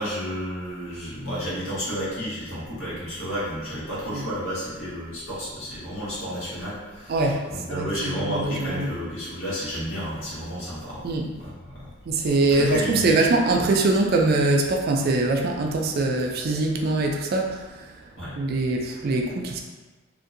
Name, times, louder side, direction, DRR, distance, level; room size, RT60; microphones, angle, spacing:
voice 1, 0.0-11.0 11.4-11.8 12.5-13.1 18.2-18.4, equal, 80° left, -9 dB, 1.4 m, -31 dB
voice 2, 7.1-8.9 11.0-11.3 12.1-17.9 18.3-19.6, right 2 dB, 50° right, 1 dB, 0.4 m, -23 dB
2.8 x 2.7 x 2.5 m, 1.2 s
head